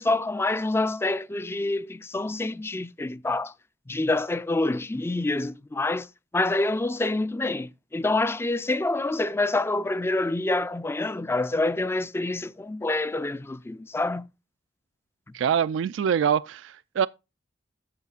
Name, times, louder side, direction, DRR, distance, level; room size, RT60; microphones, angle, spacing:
voice 1, 0.0-3.5 3.9-6.1 6.3-14.3, left 2 dB, 15° left, 0.3 m, -27 dB
voice 2, 15.3-17.1, right 8 dB, 70° right, 0.3 m, -24 dB
13.5 x 5.8 x 2.4 m
head